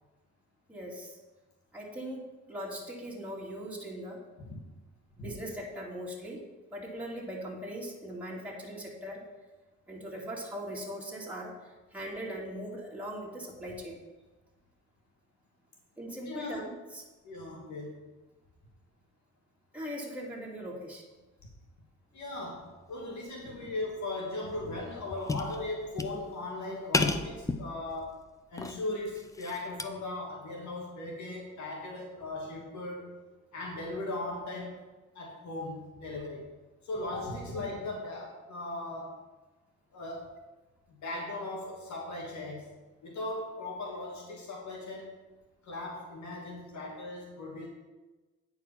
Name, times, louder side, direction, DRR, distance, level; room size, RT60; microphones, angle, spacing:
voice 1, 0.7-1.2 1.7-4.2 5.2-6.4 6.7-9.2 9.9-14.0 16.0-16.6 16.9-17.0 19.7-21.0, equal, 5° right, -4 dB, 2.2 m, -40 dB
voice 2, 16.3-16.6 17.2-17.9 22.1-28.2 28.5-33.2 33.5-34.8 35.1-36.5 36.8-39.2 39.9-40.3 40.9-42.7 43.0-45.2 45.6-47.7, left 2 dB, 70° left, -2 dB, 2.2 m, -38 dB
sound 1, 23.5-23.7 24.1-24.2 24.5-26.5 26.9-28.2 28.6-29.9, left 3 dB, 10° left, 0.5 m, -33 dB
9.2 x 4.8 x 5.7 m, 1.2 s
cardioid pair, 90°, 30 cm